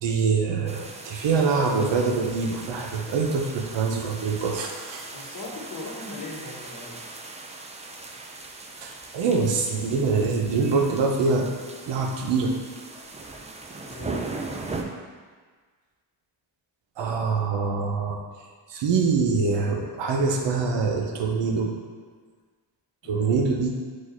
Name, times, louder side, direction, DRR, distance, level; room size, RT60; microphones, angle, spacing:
voice 1, 0.0-5.0 8.8-11.5 11.9-12.6 17.0-18.2 18.7-21.7 23.1-23.8, right 4 dB, 80° right, 1 dB, 0.7 m, -24 dB
sound 1, 0.7-14.8, right 3 dB, 15° right, 0.4 m, -39 dB
voice 2, 5.1-7.0 13.8-14.3 23.0-23.4, left 2 dB, 40° left, -2 dB, 1.0 m, -39 dB
4.7 x 2.5 x 4.2 m, 1.5 s
cardioid pair, 70°, 43 cm